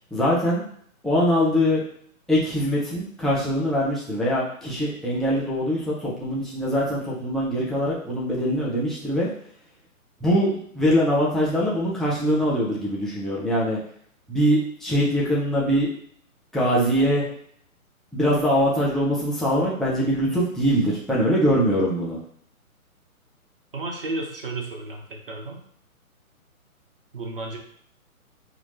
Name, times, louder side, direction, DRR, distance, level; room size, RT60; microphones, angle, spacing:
voice 1, 0.1-0.6 1.0-1.8 2.3-9.3 10.2-13.8 14.3-15.9 16.5-17.3 18.1-22.2, equal, ahead, -7 dB, 0.4 m, -22 dB
voice 2, 23.7-25.6 27.1-27.6, right 2 dB, 40° right, 0 dB, 0.7 m, -32 dB
5.7 x 2.9 x 2.6 m, 0.63 s
hypercardioid pair, 180°, 44 cm